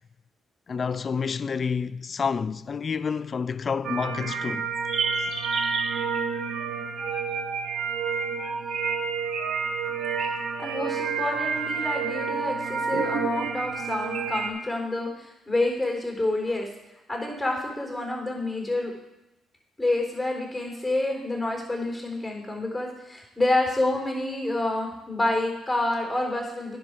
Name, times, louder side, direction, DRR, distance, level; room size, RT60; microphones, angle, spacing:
voice 1, 0.7-4.7, left 5 dB, 40° left, 0.4 m, -29 dB
sound 1, 3.8-14.5, right 5 dB, 65° right, 1.1 m, -29 dB
voice 2, 10.6-16.7 17.1-18.9 19.8-26.8, left 2 dB, 10° left, 4.0 m, -28 dB
10.5 x 5.3 x 6.4 m
cardioid pair, 90°, 0 cm